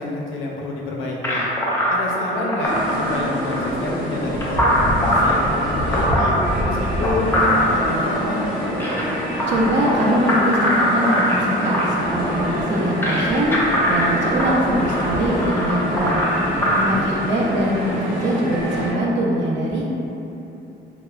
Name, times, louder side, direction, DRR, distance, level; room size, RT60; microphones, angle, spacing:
voice 1, 0.0-1.5 1.9-6.4 6.6-8.5 16.4-17.2, left 2 dB, 80° left, -2 dB, 0.5 m, -28 dB
sound 1, 1.2-16.8, equal, 10° left, 0.5 m, -22 dB
sound 2, 2.6-18.9, equal, 85° right, 0.9 m, -26 dB
voice 2, 9.5-13.5 13.8-16.2 16.7-19.8, right 1 dB, 70° right, -4 dB, 0.6 m, -22 dB
3.5 x 2.0 x 2.2 m, 3.0 s
cardioid pair, 90°, 20 cm